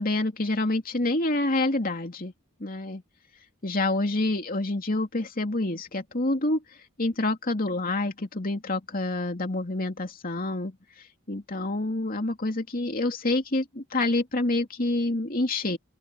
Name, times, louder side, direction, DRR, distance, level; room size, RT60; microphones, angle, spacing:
voice 1, 0.0-2.3 2.6-3.0 3.6-6.6 7.0-10.8 11.3-15.8, left 2 dB, 40° left, 2.7 m, -27 dB
head